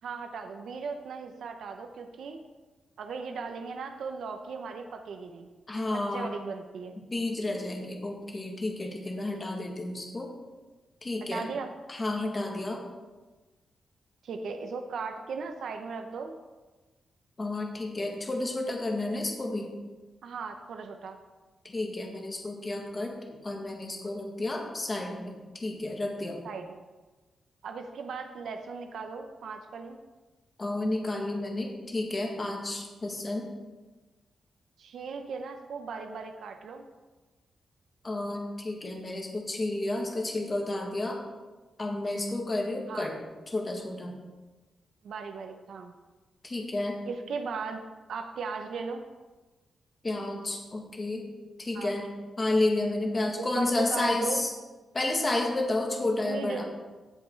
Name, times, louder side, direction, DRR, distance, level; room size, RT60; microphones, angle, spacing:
voice 1, 0.0-2.4 3.0-5.5 5.9-6.9 9.3-9.4 11.3-11.7 14.2-16.4 20.2-21.2 26.4-26.8 27.6-30.0 34.8-36.9 42.9-43.1 45.0-45.9 47.1-47.8 48.1-49.0 51.7-51.9 53.4-54.4 56.2-56.6, right 5 dB, 80° right, 5 dB, 0.8 m, -37 dB
voice 2, 5.7-6.3 7.1-10.3 11.0-11.5 11.9-12.8 17.4-19.7 21.6-23.2 23.4-26.4 30.6-33.5 38.0-41.2 41.8-43.2 43.5-44.2 46.4-47.0 50.0-51.3 51.6-52.1 52.4-54.5 54.9-56.6, left 2 dB, 25° left, 1 dB, 1.7 m, -31 dB
16.5 x 5.5 x 4.6 m, 1.2 s
wide cardioid pair, 145°, 0 cm